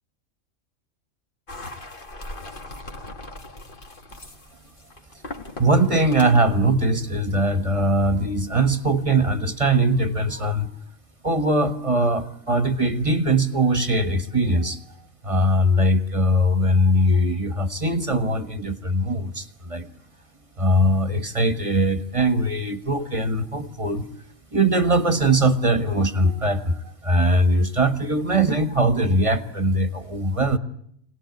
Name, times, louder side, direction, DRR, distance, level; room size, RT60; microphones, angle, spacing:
sound 1, 1.5-6.6, left 2 dB, 40° left, 1.8 m, -39 dB
voice 1, 5.6-10.7 11.2-14.8 15.2-19.9 20.6-24.1 24.5-30.6, right 1 dB, 25° right, 10 dB, 1.5 m, -21 dB
25.5 x 19.0 x 9.3 m, 0.70 s
omnidirectional pair, 1.4 m